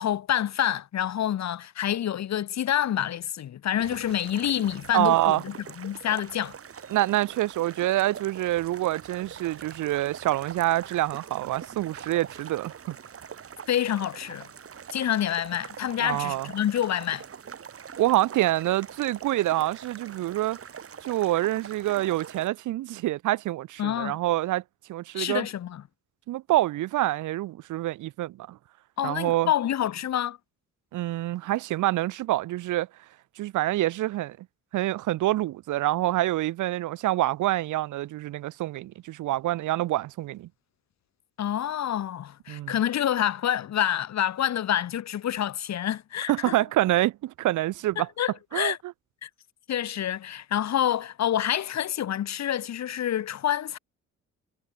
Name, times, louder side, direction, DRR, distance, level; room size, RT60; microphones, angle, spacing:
voice 1, 0.0-6.6 13.7-14.5 14.9-17.2 23.8-24.2 25.1-25.8 29.0-30.4 41.4-46.6 48.0-48.8 49.2-49.3 49.7-53.8, left 10 dB, 65° left, 2.2 m, -27 dB
sound 1, 3.8-22.5, right 7 dB, 50° right, 4.5 m, -44 dB
voice 2, 4.9-5.4 6.9-13.0 16.0-16.5 18.0-20.6 21.0-24.6 24.9-25.5 26.3-28.6 29.0-29.5 30.9-32.9 33.4-34.5 34.7-40.5 42.5-42.7 46.3-48.1 48.5-48.7, right 15 dB, 80° right, 1.1 m, -26 dB
cardioid pair, 90°, 30 cm